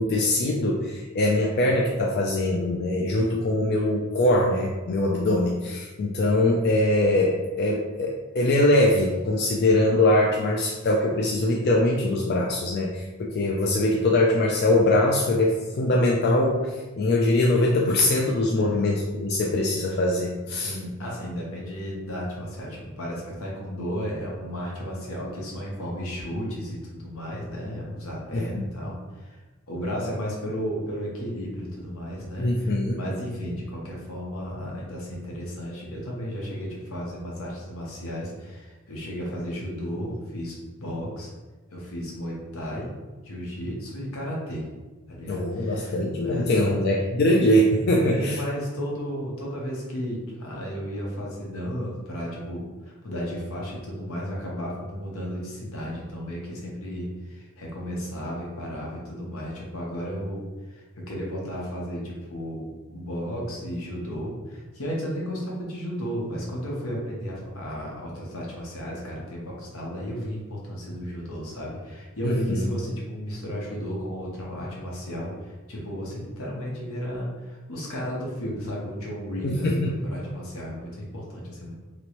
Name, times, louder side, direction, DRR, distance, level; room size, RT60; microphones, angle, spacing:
voice 1, 0.0-20.8 28.3-28.7 32.4-33.0 45.3-48.4 72.2-72.6 79.4-80.0 80.2-80.3, left 1 dB, 50° left, -1 dB, 0.3 m, -22 dB
voice 2, 18.5-18.9 20.5-29.4 29.7-41.3 41.7-42.9 43.2-44.6 45.1-46.8 48.0-81.7, equal, 85° left, -3 dB, 1.0 m, -34 dB
3.0 x 3.0 x 2.9 m, 1.2 s
head